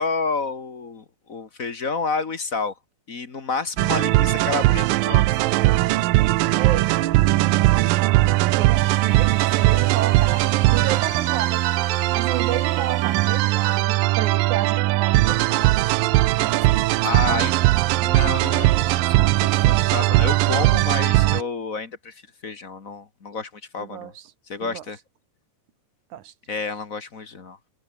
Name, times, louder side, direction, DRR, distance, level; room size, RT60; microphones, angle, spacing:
voice 1, 0.0-2.7 3.1-5.4 8.2-8.3 17.0-17.5 18.0-24.1 24.5-25.0 26.5-27.6, left 4 dB, 35° left, 1.4 m, -30 dB
sound 1, 3.8-21.4, right 18 dB, 85° right, 2.5 m, -19 dB
voice 2, 6.2-15.9 16.1-16.8 17.1-17.5 23.8-24.3 24.6-24.8 26.1-26.3, right 11 dB, 70° right, 2.5 m, -32 dB
Domestic sounds home sounds, 8.6-14.4, left 5 dB, 85° left, 6.8 m, -43 dB
omnidirectional pair, 3.9 m